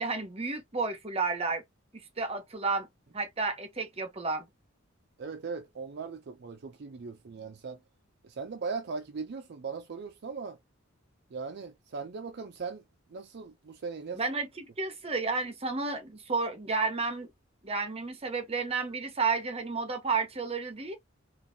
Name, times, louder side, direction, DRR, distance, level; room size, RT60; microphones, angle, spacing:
voice 1, 0.0-1.6 2.2-2.9 3.1-4.4 14.1-17.3 17.6-21.0, right 4 dB, 30° right, 0.8 m, -31 dB
voice 2, 5.2-7.8 8.2-10.6 11.3-12.8 13.1-14.2, right 5 dB, 55° right, 0.5 m, -39 dB
3.9 x 2.5 x 2.7 m
head